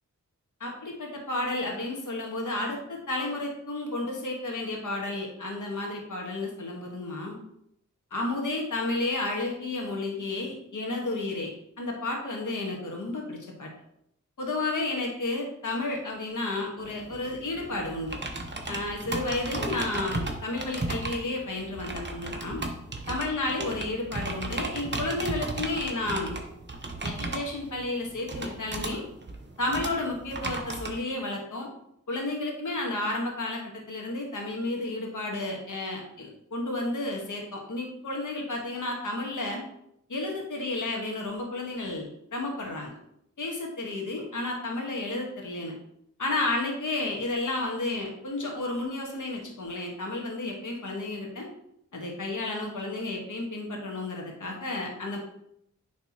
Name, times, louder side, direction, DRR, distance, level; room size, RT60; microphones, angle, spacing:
voice 1, 0.6-7.4 8.1-11.5 11.8-13.7 14.4-18.2 18.7-22.6 23.1-26.3 27.0-29.0 29.6-31.7 32.1-39.6 40.1-42.9 43.4-45.7 46.2-51.5 51.9-55.2, left 2 dB, 70° left, 0 dB, 1.5 m, -32 dB
sound 1, 16.8-31.0, right 2 dB, 35° right, 1.1 m, -35 dB
9.5 x 3.4 x 2.9 m, 0.75 s
cardioid pair, 50°, 32 cm